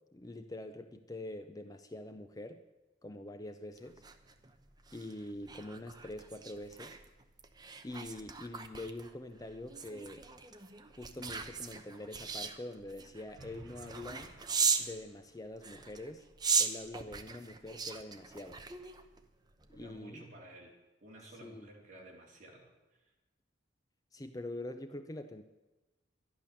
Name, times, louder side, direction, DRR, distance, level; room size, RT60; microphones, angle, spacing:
voice 1, 0.1-2.6 3.0-4.0 4.9-7.0 7.8-10.2 11.0-14.3 14.8-16.2 16.6-18.6 19.7-20.3 21.4-21.7 24.1-25.4, left 1 dB, 20° left, 8 dB, 0.5 m, -45 dB
sound 1, 3.8-14.9 15.6-19.2 19.6-19.8, right 5 dB, 20° right, 0.8 m, -38 dB
sound 2, 13.4-15.4, right 2 dB, 90° right, 1.1 m, -56 dB
voice 2, 19.7-20.8 21.0-23.0, right 1 dB, 40° right, -2 dB, 3.4 m, -53 dB
12.0 x 11.5 x 6.9 m, 1.1 s
head